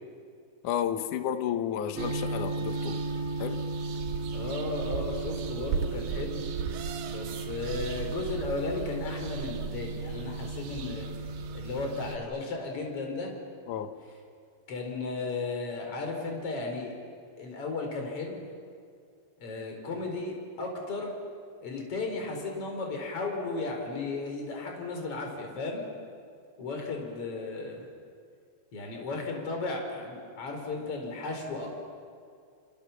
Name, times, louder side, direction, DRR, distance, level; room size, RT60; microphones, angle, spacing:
voice 1, 0.6-3.0 3.4-3.7 13.7-13.9, left 9 dB, 65° left, 8 dB, 2.2 m, -32 dB
sound 1, 2.0-12.2, right 4 dB, 85° right, 4.1 m, -34 dB
voice 2, 4.3-6.4 7.1-11.1 11.5-13.3 14.7-16.9 17.4-18.4 19.4-21.1 21.6-25.8 26.6-27.9 28.7-31.7, left 3 dB, 35° left, 2 dB, 5.0 m, -35 dB
29.5 x 28.0 x 7.1 m, 2.3 s
omnidirectional pair, 5.0 m